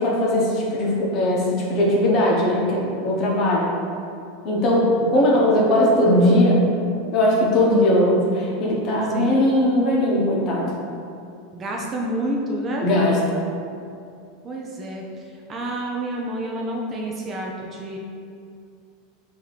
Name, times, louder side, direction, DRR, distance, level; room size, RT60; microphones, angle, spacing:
voice 1, 0.0-3.7 4.4-6.6 7.0-10.7 12.8-13.4, left 1 dB, 40° left, -3 dB, 0.8 m, -19 dB
voice 2, 11.5-12.9 14.4-15.0 15.5-18.0, right 1 dB, 25° right, -1 dB, 0.4 m, -28 dB
3.1 x 2.7 x 4.0 m, 2.4 s
supercardioid pair, 145°, 0 cm